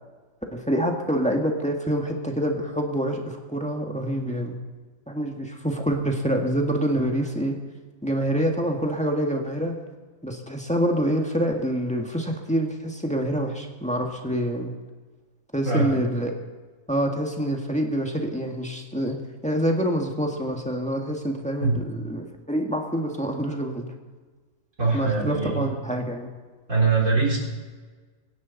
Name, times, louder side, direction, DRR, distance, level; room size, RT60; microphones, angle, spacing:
voice 1, 0.5-4.6 5.1-7.6 8.0-9.8 10.2-14.7 15.5-16.3 16.9-19.2 19.4-23.9 24.9-26.3, right 1 dB, 5° left, 2 dB, 1.6 m, -26 dB
voice 2, 15.6-16.0 21.6-21.8 24.8-25.7 26.7-27.4, right 4 dB, 75° right, -2 dB, 4.4 m, -22 dB
24.5 x 11.0 x 4.1 m, 1.4 s
omnidirectional pair, 1.4 m